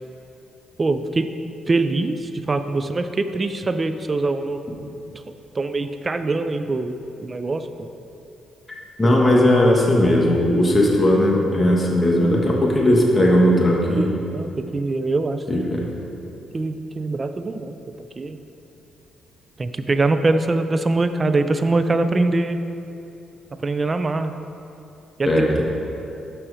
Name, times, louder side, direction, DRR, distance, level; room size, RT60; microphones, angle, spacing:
voice 1, 0.8-1.3 1.7-4.6 5.5-7.7 9.0-9.1 14.3-15.6 16.5-17.8 18.2-18.4 19.6-22.6 23.6-24.3 25.2-25.3, right 3 dB, 30° right, 10 dB, 0.4 m, -23 dB
voice 2, 9.0-14.2 15.5-15.8 25.3-25.6, left 1 dB, 15° left, -3 dB, 1.4 m, -17 dB
6.2 x 6.0 x 4.8 m, 2.8 s
cardioid pair, 90°, 0 cm